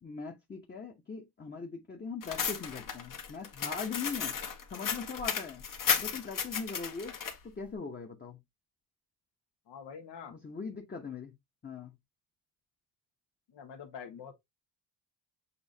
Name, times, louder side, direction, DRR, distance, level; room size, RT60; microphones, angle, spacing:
voice 1, 0.0-4.4 4.7-5.7 6.0-7.2 7.4-8.4 10.3-11.3 11.6-11.9, left 5 dB, 25° left, 0.9 m, -40 dB
sound 1, 2.2-7.3, left 7 dB, 50° left, 1.1 m, -34 dB
voice 2, 9.7-10.4 13.5-14.3, left 7 dB, 80° left, 1.3 m, -45 dB
6.9 x 2.6 x 2.7 m
cardioid pair, 90°, 41 cm